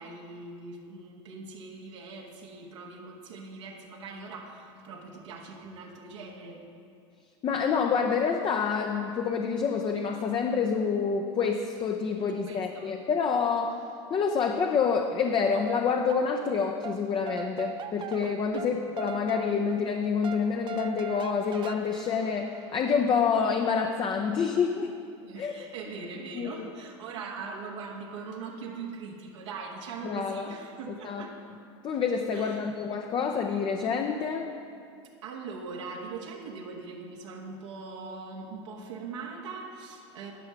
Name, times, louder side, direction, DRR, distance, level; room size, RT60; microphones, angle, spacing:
voice 1, 0.0-6.6 12.5-12.9 18.5-18.8 25.2-31.3 32.3-32.7 35.2-40.3, right 4 dB, 80° right, -1 dB, 1.3 m, -41 dB
voice 2, 7.4-13.8 14.1-24.9 25.4-25.5 26.3-26.7 30.0-30.5 30.9-31.2 31.8-34.5, left 6 dB, 30° left, 4 dB, 0.6 m, -27 dB
sound 1, 15.3-16.6 16.8-23.0, right 7 dB, 30° right, 0.5 m, -40 dB
11.0 x 5.6 x 6.0 m, 2.4 s
hypercardioid pair, 100°, 15 cm